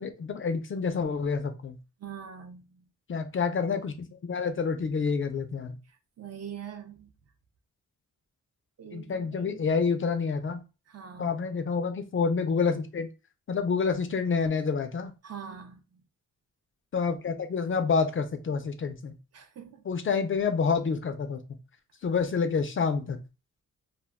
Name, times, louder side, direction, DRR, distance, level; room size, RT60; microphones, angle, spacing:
voice 1, 0.0-1.8 3.1-5.7 8.9-10.6 11.2-13.1 13.5-15.1 16.9-19.1 19.9-21.4 22.0-23.2, left 5 dB, 40° left, 0.4 m, -28 dB
voice 2, 2.0-2.9 5.9-7.1 8.8-9.6 10.9-11.3 15.2-16.0 19.3-19.9, right 8 dB, 50° right, 0.5 m, -43 dB
2.2 x 2.2 x 3.3 m
cardioid pair, 95°, 33 cm